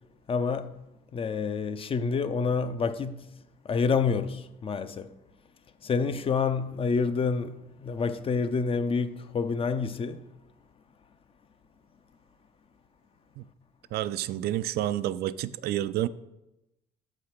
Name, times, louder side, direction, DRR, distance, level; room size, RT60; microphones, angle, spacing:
voice 1, 0.3-0.7 1.1-3.3 3.6-5.1 5.8-10.2, left 5 dB, 35° left, 0.5 m, -28 dB
voice 2, 13.9-16.1, right 13 dB, 70° right, 0.4 m, -29 dB
7.0 x 5.0 x 5.8 m
cardioid pair, 110°, 17 cm